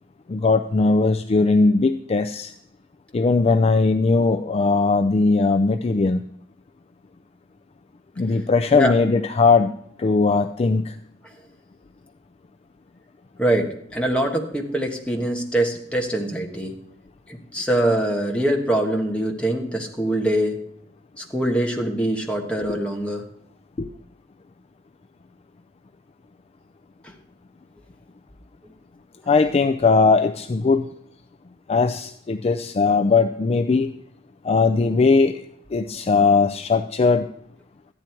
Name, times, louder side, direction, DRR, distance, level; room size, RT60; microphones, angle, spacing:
voice 1, 0.3-2.5 3.1-6.2 8.2-9.7 10.0-11.0 22.7-22.8 23.8-23.9 29.3-30.9 31.7-33.9 34.4-35.4 35.7-37.3, left 4 dB, 30° left, 7 dB, 0.4 m, -19 dB
voice 2, 13.4-16.7 17.5-20.6 21.2-23.2, right 1 dB, 5° left, 1 dB, 1.4 m, -23 dB
13.5 x 9.9 x 4.5 m, 0.69 s
head